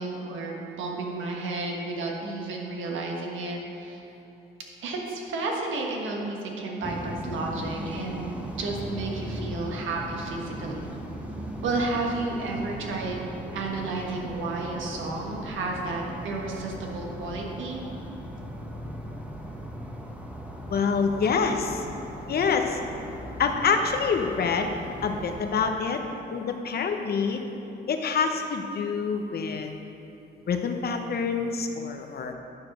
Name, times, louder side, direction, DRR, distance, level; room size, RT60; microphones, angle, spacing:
voice 1, 0.0-4.0 4.8-8.2 8.6-10.9 11.6-13.2 13.5-17.8, right 3 dB, 75° right, -1 dB, 1.5 m, -32 dB
sound 1, 6.8-26.3, equal, 5° right, 1.0 m, -38 dB
voice 2, 20.7-21.8 22.3-22.8 23.4-24.8 25.0-26.0 26.3-27.4 27.9-29.7 30.5-32.3, left 5 dB, 50° left, 5 dB, 0.8 m, -26 dB
9.4 x 4.8 x 6.1 m, 3.0 s
cardioid pair, 90°, 20 cm